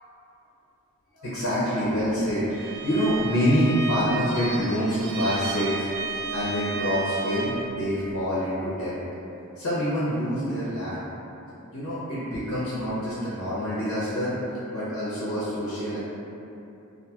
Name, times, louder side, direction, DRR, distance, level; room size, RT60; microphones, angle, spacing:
voice 1, 1.1-5.9 6.3-8.9 9.6-11.0 11.7-14.4 14.7-16.0, equal, 85° left, -9 dB, 0.6 m, -26 dB
Bowed string instrument, 2.5-7.8, right 3 dB, 65° right, 0.3 m, -33 dB
2.5 x 2.3 x 2.7 m, 2.8 s
head